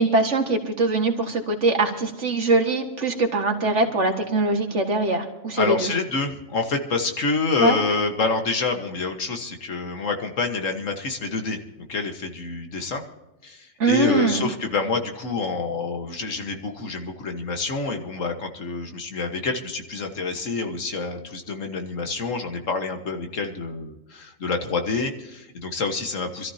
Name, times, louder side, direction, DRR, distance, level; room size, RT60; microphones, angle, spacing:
voice 1, 0.0-5.9 7.6-7.8 13.8-14.5, right 2 dB, 60° right, 3 dB, 2.2 m, -22 dB
voice 2, 5.6-13.0 13.4-26.5, left 4 dB, 70° left, 4 dB, 1.8 m, -27 dB
25.5 x 13.5 x 2.9 m, 0.98 s
omnidirectional pair, 1.4 m